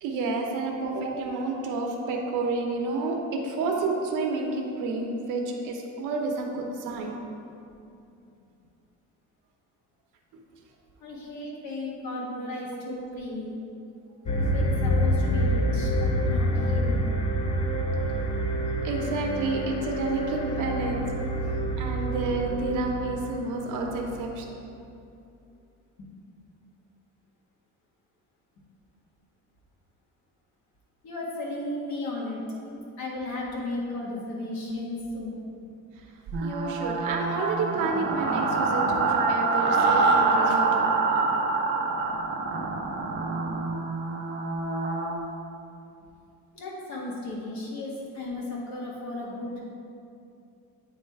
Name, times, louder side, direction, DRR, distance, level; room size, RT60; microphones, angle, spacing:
voice 1, 0.0-7.1 12.4-12.5 18.8-21.0 21.8-24.4 36.4-40.9, right 3 dB, 70° right, 1 dB, 0.9 m, -30 dB
voice 2, 11.0-13.6 14.5-17.0 26.0-26.1 31.0-35.7 38.9-39.0 46.5-49.6, left 2 dB, 60° left, -4 dB, 1.6 m, -35 dB
sound 1, 14.3-24.6, equal, 20° left, 0.3 m, -27 dB
sound 2, 36.3-45.2, right 3 dB, 35° right, 0.6 m, -25 dB
8.9 x 3.2 x 4.7 m, 2.6 s
cardioid pair, 180°, 33 cm